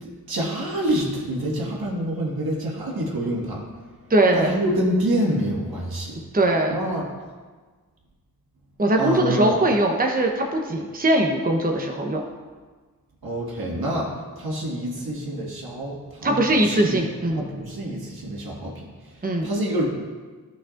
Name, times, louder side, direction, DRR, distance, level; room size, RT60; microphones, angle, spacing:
voice 1, 0.0-3.6 4.3-6.2 6.7-7.1 9.0-9.6 13.2-14.1 14.4-17.0 17.3-18.7 19.4-19.8, right 1 dB, 70° right, -3 dB, 1.9 m, -26 dB
voice 2, 4.1-4.5 6.3-6.7 8.8-12.2 16.2-17.4 19.2-19.5, right 1 dB, 25° right, 2 dB, 0.9 m, -21 dB
12.0 x 6.1 x 2.5 m, 1.4 s
cardioid pair, 40°, 37 cm